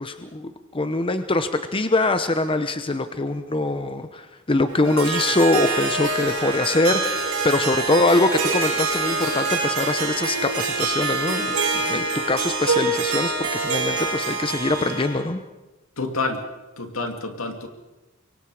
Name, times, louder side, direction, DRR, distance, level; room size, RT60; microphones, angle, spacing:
voice 1, 0.0-15.4, left 2 dB, 25° left, 9 dB, 0.9 m, -23 dB
Harp, 4.7-15.2, right 3 dB, 85° right, 5.6 m, -25 dB
voice 2, 16.0-16.4 16.8-17.7, left 3 dB, 70° left, 5 dB, 2.5 m, -28 dB
25.5 x 23.0 x 4.9 m, 1.1 s
head